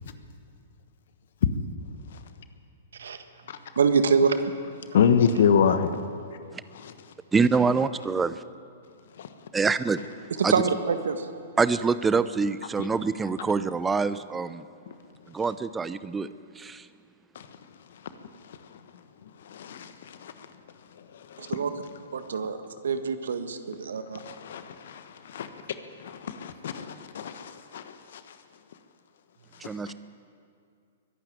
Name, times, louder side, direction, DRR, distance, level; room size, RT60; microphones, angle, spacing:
voice 1, 3.7-4.5 10.5-11.3 21.4-21.7 22.1-22.6 22.8-24.2, right 5 dB, 70° right, 1.6 m, -25 dB
voice 2, 4.9-5.9 6.7-6.9 9.2-9.3 12.8-12.9 14.9-15.0 17.3-17.5 18.4-18.6 19.4-20.5 21.1-21.6 24.1-25.5 26.0-28.4 29.6-29.9, left 7 dB, 60° left, 1.2 m, -27 dB
voice 3, 7.3-8.4 9.5-10.0 10.4-10.6 11.6-14.6 15.3-16.3 16.6-16.9 29.6-29.9, right 4 dB, 10° right, 0.7 m, -25 dB
23.0 x 12.0 x 9.6 m
figure-of-eight pair, 110°, 0 cm